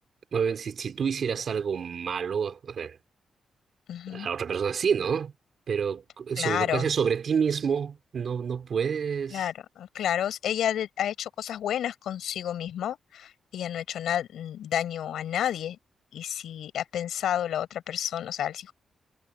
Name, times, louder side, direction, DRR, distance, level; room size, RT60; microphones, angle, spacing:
voice 1, 0.3-3.0 4.1-5.3 5.7-9.4, right 6 dB, 45° right, 3.3 m, -28 dB
voice 2, 3.9-4.3 6.4-6.9 9.3-15.8 16.1-18.7, left 10 dB, 85° left, 5.9 m, -30 dB
wide cardioid pair, 180°, 0 cm